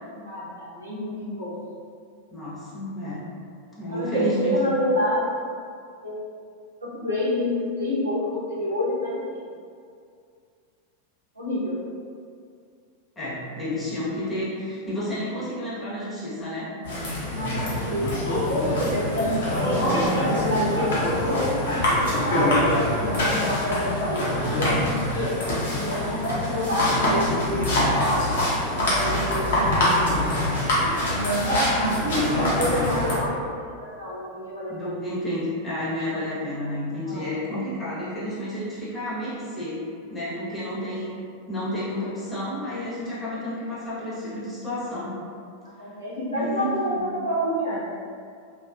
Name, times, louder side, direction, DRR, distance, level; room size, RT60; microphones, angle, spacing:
voice 1, 0.1-1.6 3.9-5.5 6.0-6.2 6.8-9.5 11.3-11.8 17.3-19.9 20.2-22.5 22.9-25.3 25.7-27.6 27.9-28.3 28.7-29.6 31.8-34.7 37.0-37.3 45.8-47.9, left 1 dB, 80° right, -10 dB, 0.9 m, -28 dB
voice 2, 2.3-3.2 3.8-4.7 13.2-16.7 31.9-32.3 32.7-32.9 34.7-39.8 40.1-41.1 41.5-45.2 46.3-46.7 47.0-47.1, equal, 15° left, -9 dB, 0.9 m, -31 dB
sound 1, 16.8-33.2, left 1 dB, 60° left, 0.7 m, -24 dB
2.6 x 2.5 x 2.3 m, 2.3 s
figure-of-eight pair, 90°, 0 cm